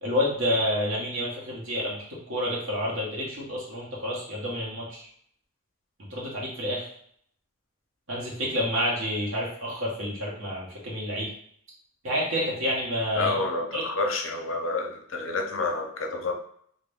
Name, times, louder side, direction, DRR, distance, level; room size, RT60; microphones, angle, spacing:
voice 1, 0.0-2.0 2.3-5.1 6.1-6.9 8.1-11.3 12.0-13.4 13.7-13.8, equal, 70° right, -5 dB, 1.2 m, -29 dB
voice 2, 13.1-16.3, left 3 dB, 70° left, 2 dB, 0.6 m, -29 dB
2.6 x 2.6 x 3.4 m, 0.64 s
head